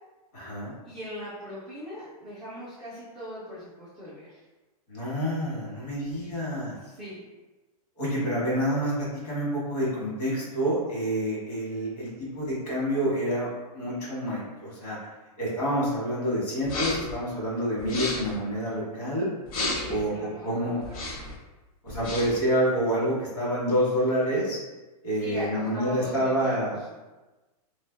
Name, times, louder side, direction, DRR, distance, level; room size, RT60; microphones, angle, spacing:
voice 1, 0.3-0.7 4.9-6.8 8.0-15.0 15.4-19.3 19.9-20.8 21.8-24.6 25.0-26.8, equal, 80° left, -6 dB, 1.4 m, -28 dB
voice 2, 0.8-4.3 6.9-7.2 19.6-21.0 25.2-26.3, equal, 5° right, -16 dB, 0.3 m, -40 dB
sound 1, 16.6-17.2 17.8-18.4 19.5-20.0 20.8-21.4 21.9-22.4, left 2 dB, 65° left, 0.8 m, -32 dB
2.5 x 2.5 x 2.4 m, 1.2 s
supercardioid pair, 175°, 20 cm